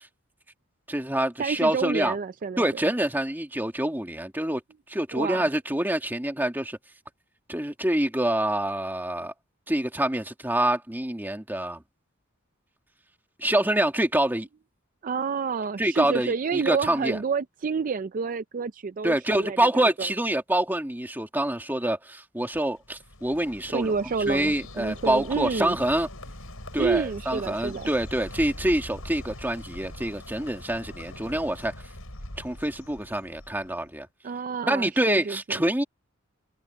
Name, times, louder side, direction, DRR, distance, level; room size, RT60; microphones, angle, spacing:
voice 1, 0.9-2.2 2.6-4.6 4.9-6.8 7.5-9.3 9.7-11.8 13.4-14.5 15.8-17.2 19.0-23.9 24.3-26.1 26.7-31.7 32.4-34.1 34.7-35.8, right 1 dB, 10° right, 2.0 m, -26 dB
voice 2, 1.4-2.6 5.1-5.5 15.0-20.1 23.7-25.8 26.8-27.9 34.2-35.6, right 5 dB, 40° right, 0.4 m, -29 dB
Bird, 22.5-33.9, left 1 dB, 75° left, 7.8 m, -42 dB
head